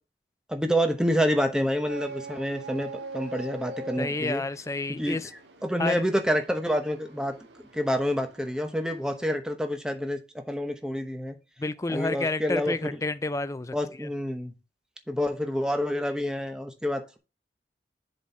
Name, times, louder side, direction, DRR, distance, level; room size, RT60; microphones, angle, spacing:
voice 1, 0.5-4.4 4.9-5.2 5.6-7.3 7.7-10.2 10.5-11.4 11.9-13.0 13.7-14.5 15.1-17.2, equal, 5° right, 0.9 m, -28 dB
sound 1, 1.9-9.2, right 3 dB, 85° right, 1.5 m, -43 dB
voice 2, 4.0-5.3 5.8-6.0 11.6-13.7 14.0-14.1, left 3 dB, 15° left, 0.4 m, -30 dB
7.2 x 4.3 x 4.7 m
head